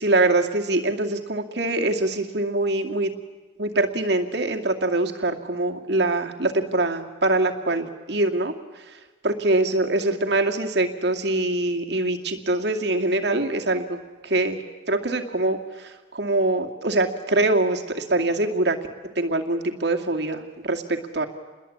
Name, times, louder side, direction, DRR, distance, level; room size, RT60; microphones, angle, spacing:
voice 1, 0.0-3.1 3.6-14.0 14.2-18.8 19.2-20.8 21.1-21.3, right 2 dB, 60° right, 4 dB, 2.3 m, -24 dB
29.0 x 22.0 x 8.6 m, 1.3 s
head